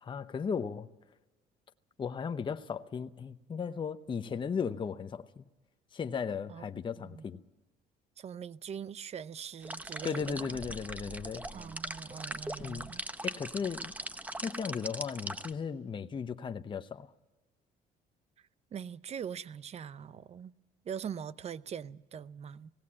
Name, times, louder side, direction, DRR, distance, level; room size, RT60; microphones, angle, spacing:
voice 1, 0.0-0.9 2.0-5.4 5.9-7.4 10.0-11.4 12.6-12.9 13.2-13.9 14.4-17.1, left 6 dB, 30° left, 0.8 m, -36 dB
voice 2, 6.5-7.2 8.2-10.6 11.5-13.0 18.7-20.5 20.8-22.7, right 8 dB, 40° right, 0.6 m, -42 dB
sound 1, 9.6-15.5, right 1 dB, 10° right, 0.8 m, -41 dB
18.5 x 17.0 x 8.7 m
cardioid pair, 110°, 17 cm